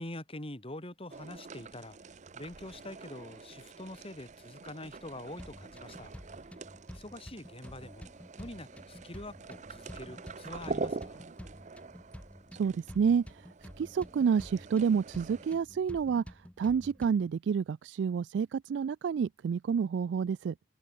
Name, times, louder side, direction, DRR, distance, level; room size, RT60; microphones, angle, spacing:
voice 1, 0.0-2.0 2.3-6.1 6.9-8.1 8.4-11.3, left 1 dB, 35° left, 3.7 m, -45 dB
sound 1, 1.1-15.5, right 3 dB, 45° right, 0.7 m, -45 dB
sound 2, 5.4-17.4, equal, 5° left, 1.4 m, -50 dB
voice 2, 12.6-13.2 13.8-16.2 16.6-20.5, right 6 dB, 85° right, 0.3 m, -29 dB
head